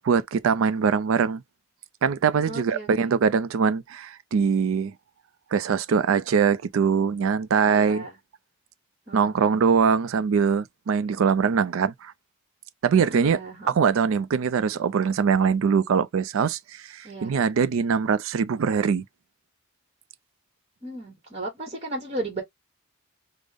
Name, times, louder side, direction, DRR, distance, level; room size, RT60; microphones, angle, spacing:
voice 1, 0.0-1.4 2.0-4.9 5.5-8.1 9.1-12.1 12.8-13.4 13.7-19.0, right 6 dB, 80° right, 0.4 m, -22 dB
voice 2, 2.4-3.1 7.6-8.1 9.1-9.6 13.1-13.8 17.0-17.3 20.8-22.4, right 2 dB, 30° right, 1.0 m, -35 dB
5.2 x 2.0 x 3.3 m
head